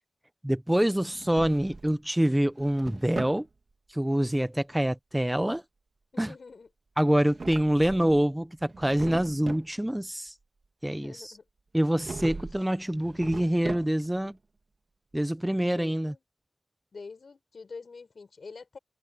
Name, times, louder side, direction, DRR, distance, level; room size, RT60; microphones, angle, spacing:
voice 1, 0.4-3.5 3.9-5.6 6.2-6.3 7.0-10.3 10.8-11.3 11.7-14.4 15.1-16.1, right 1 dB, 10° right, 0.7 m, -26 dB
Drawer open or close, 1.0-2.0 2.4-3.5 7.1-8.2 8.6-9.7 11.9-12.6 12.9-14.2, right 3 dB, 55° right, 2.0 m, -39 dB
voice 2, 6.1-6.7 10.8-11.4 15.6-16.2 16.9-18.8, left 4 dB, 65° left, 6.8 m, -46 dB
wide cardioid pair, 85°, 0 cm